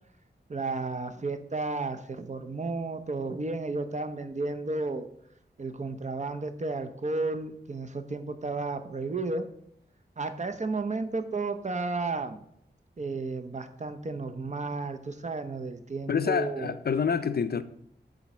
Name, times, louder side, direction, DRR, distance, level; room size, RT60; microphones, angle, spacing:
voice 1, 0.5-5.1 5.6-9.5 10.2-12.4 13.0-16.7, right 3 dB, 40° right, 0.7 m, -33 dB
voice 2, 16.1-17.6, left 6 dB, 60° left, 0.5 m, -27 dB
7.3 x 4.0 x 6.1 m
wide cardioid pair, 100°, 18 cm